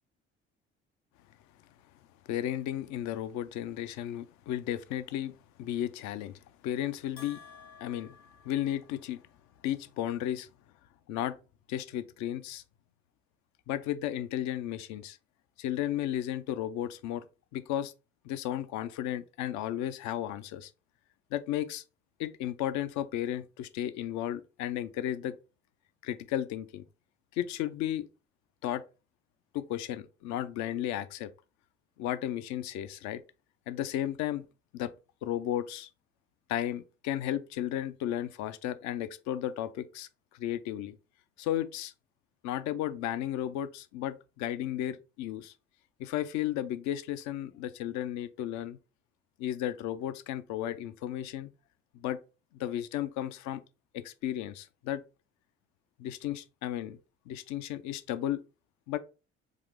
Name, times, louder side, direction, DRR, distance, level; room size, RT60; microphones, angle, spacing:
voice 1, 2.3-5.3 5.6-6.3 6.6-7.4 7.8-8.2 8.4-9.2 9.6-10.5 11.1-11.4 11.7-12.6 13.7-15.2 15.6-17.2 17.5-17.9 18.2-20.7 21.3-21.8 22.2-25.3 26.0-26.8 27.3-28.1 28.6-28.8 29.5-31.3 32.0-33.2 33.7-34.4 34.7-34.9 35.2-35.9 36.5-40.1 40.3-41.0 41.4-41.9 42.4-45.5 46.0-48.8 49.4-51.5 51.9-52.2 52.5-53.6 53.9-55.0 56.0-57.0 57.3-58.4 58.9-59.0, left 12 dB, 55° left, 0.5 m, -34 dB
Bell, 7.2-9.3, left 5 dB, 70° left, 1.3 m, -53 dB
3.6 x 2.5 x 3.3 m
figure-of-eight pair, 50°, 35 cm